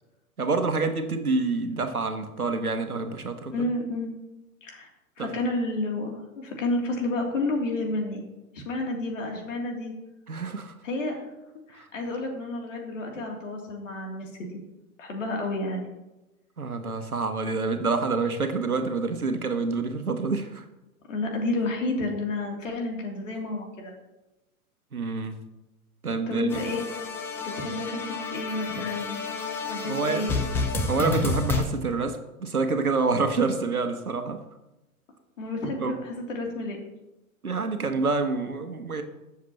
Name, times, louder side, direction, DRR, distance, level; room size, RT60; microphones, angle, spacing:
voice 1, 0.4-3.7 5.2-5.3 10.3-10.7 11.7-11.8 16.6-20.6 24.9-25.4 26.0-26.5 29.8-30.3 30.9-34.4 35.8-36.0 37.4-39.0, right 4 dB, 80° right, 7 dB, 1.4 m, -27 dB
voice 2, 3.5-4.1 4.6-4.9 5.2-8.2 8.5-9.9 10.8-11.2 11.7-14.6 15.0-15.8 21.1-23.9 26.3-26.8 27.4-29.2 29.6-30.3 35.4-36.8, left 2 dB, 60° left, 1 dB, 3.1 m, -30 dB
sound 1, 26.5-31.6, left 4 dB, 5° left, 0.5 m, -30 dB
21.5 x 7.2 x 3.0 m, 1.0 s
figure-of-eight pair, 110°, 43 cm